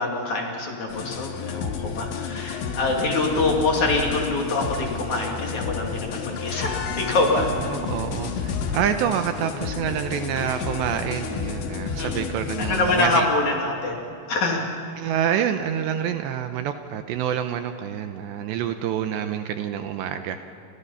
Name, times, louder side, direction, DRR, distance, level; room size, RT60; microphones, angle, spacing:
voice 1, 0.0-7.5 12.0-14.7, left 2 dB, 45° left, 0 dB, 3.2 m, -25 dB
sound 1, 0.9-13.2, left 5 dB, 75° left, 3.9 m, -31 dB
voice 2, 7.7-13.3 15.0-20.4, right 9 dB, 75° right, 8 dB, 2.8 m, -27 dB
30.0 x 26.0 x 5.7 m, 2.5 s
omnidirectional pair, 5.6 m